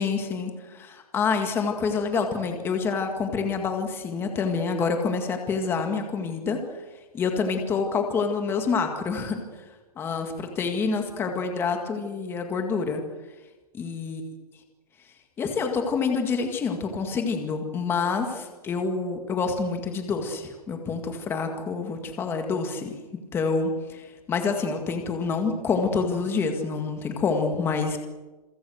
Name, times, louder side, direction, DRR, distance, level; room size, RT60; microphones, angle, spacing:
voice 1, 0.0-6.6 7.1-9.4 10.0-13.0 13.7-14.2 15.4-28.0, left 5 dB, 10° left, 5 dB, 2.0 m, -27 dB
27.5 x 23.5 x 6.4 m, 1.2 s
hypercardioid pair, 175°, 20 cm